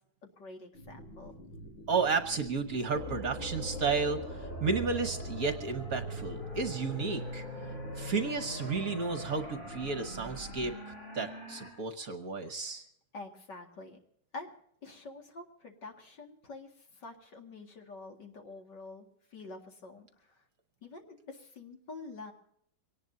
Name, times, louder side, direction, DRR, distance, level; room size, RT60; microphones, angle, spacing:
voice 1, 0.2-1.3 13.1-14.0 14.3-14.5 14.8-20.4 20.8-22.3, left 3 dB, 60° left, 3 dB, 2.7 m, -47 dB
sound 1, 0.7-10.7, right 2 dB, 85° left, 8.1 m, -48 dB
voice 2, 1.9-4.2 4.6-7.4 7.9-10.7 11.1-12.8, right 4 dB, 50° right, 7 dB, 1.4 m, -32 dB
sound 2, 2.9-11.7, equal, 30° left, 6.6 m, -41 dB
23.5 x 18.5 x 2.7 m, 0.69 s
omnidirectional pair, 2.2 m